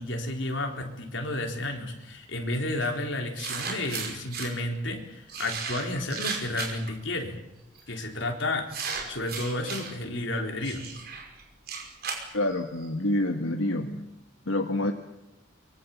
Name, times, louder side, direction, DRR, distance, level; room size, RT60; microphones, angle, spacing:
voice 1, 0.0-7.4 7.9-10.9, left 2 dB, 65° left, 2 dB, 4.0 m, -32 dB
sound 1, 2.8-2.9 3.4-4.5 5.3-6.9 7.7-8.0 8.7-9.9 10.6-12.9, right 5 dB, 50° right, 5.4 m, -35 dB
voice 2, 12.3-14.1 14.5-14.9, left 1 dB, 90° left, 5 dB, 1.6 m, -27 dB
24.5 x 23.5 x 7.3 m, 0.89 s
head